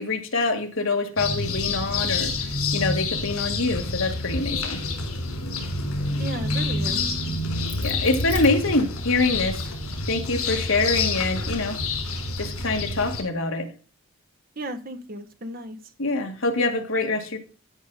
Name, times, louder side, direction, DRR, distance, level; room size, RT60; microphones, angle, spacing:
voice 1, 0.0-2.3 2.7-4.8 7.8-9.6 10.1-11.8 12.4-13.7 16.0-17.4, left 3 dB, 65° left, 5 dB, 1.7 m, -25 dB
sound 1, 1.2-13.2, left 3 dB, 85° left, 4.1 m, -28 dB
voice 2, 6.2-7.2 14.6-15.8, right 1 dB, 40° right, 6 dB, 1.2 m, -34 dB
Crack, 6.8-9.3 9.8-11.5, left 1 dB, 5° left, 1.1 m, -43 dB
14.5 x 5.9 x 4.0 m, 0.36 s
head